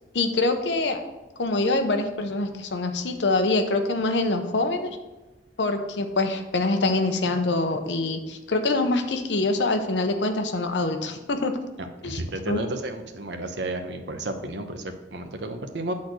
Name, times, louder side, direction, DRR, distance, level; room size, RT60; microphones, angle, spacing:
voice 1, 0.1-1.0 1.4-4.9 5.6-11.5 12.0-12.2 12.5-12.6, left 2 dB, 90° left, 7 dB, 0.9 m, -25 dB
voice 2, 11.8-15.9, right 2 dB, 80° right, 5 dB, 0.9 m, -32 dB
8.5 x 4.2 x 6.2 m, 1.1 s
head